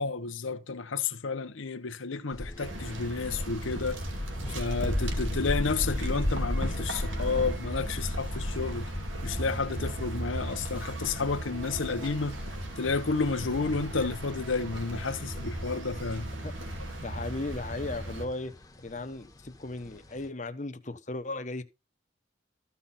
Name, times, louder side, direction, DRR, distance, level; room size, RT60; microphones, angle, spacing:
voice 1, 0.0-4.0 4.5-8.9 9.2-12.4 12.8-16.3, left 4 dB, 85° left, 0.9 m, -31 dB
sound 1, 2.3-20.3, left 1 dB, 20° left, 1.1 m, -37 dB
sound 2, 2.6-18.2, right 1 dB, 80° right, 2.4 m, -37 dB
voice 2, 17.0-21.6, left 2 dB, 40° left, 1.0 m, -36 dB
14.0 x 5.7 x 4.2 m
head